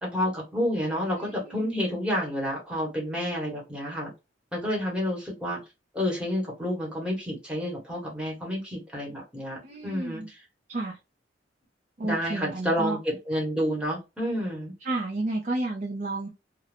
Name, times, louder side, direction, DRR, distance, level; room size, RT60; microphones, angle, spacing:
voice 1, 0.0-4.1 4.5-5.6 5.9-10.2 12.0-14.7, equal, 5° right, 1.2 m, -29 dB
voice 2, 1.2-1.7 9.6-10.3 10.7-11.0 12.0-13.0 14.8-16.3, right 2 dB, 45° right, 0.5 m, -31 dB
2.5 x 2.2 x 3.3 m
head